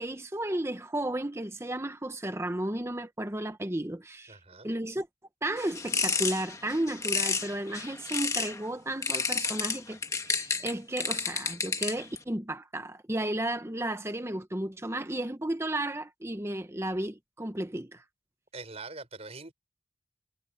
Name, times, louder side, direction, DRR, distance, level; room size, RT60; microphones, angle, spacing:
voice 1, 0.0-4.4 4.6-5.1 5.4-10.0 10.3-18.0, right 1 dB, 15° right, 0.9 m, -33 dB
voice 2, 4.3-4.7 18.5-19.5, right 3 dB, 35° right, 5.6 m, -43 dB
sound 1, 5.6-8.6 9.0-12.2, left 4 dB, 15° left, 1.4 m, -31 dB
head